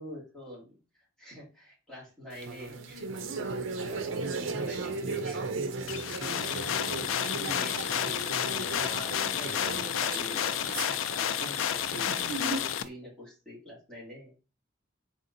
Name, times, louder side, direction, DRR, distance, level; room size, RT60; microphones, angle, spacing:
voice 1, 0.0-3.1 3.9-5.4 6.2-6.7 7.4-14.3, equal, 5° left, -8 dB, 2.2 m, -46 dB
sound 1, 2.3-12.8, right 3 dB, 80° right, 0.5 m, -36 dB
sound 2, 5.9-12.8, left 9 dB, 85° left, 0.3 m, -31 dB
4.2 x 3.7 x 2.6 m, 0.33 s
head